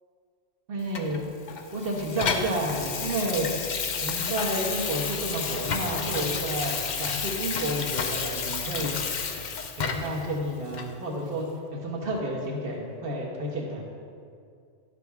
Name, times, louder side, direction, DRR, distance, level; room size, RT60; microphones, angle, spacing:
voice 1, 0.7-1.3 1.7-3.5 4.0-8.9 9.8-11.4 11.7-13.8, right 1 dB, 50° right, -2 dB, 1.6 m, -30 dB
Water tap faucet / Sink (filling or washing), 0.9-10.2 10.7-10.9, left 5 dB, 50° left, 0.6 m, -31 dB
11.5 x 7.0 x 3.5 m, 2.3 s
omnidirectional pair, 1.3 m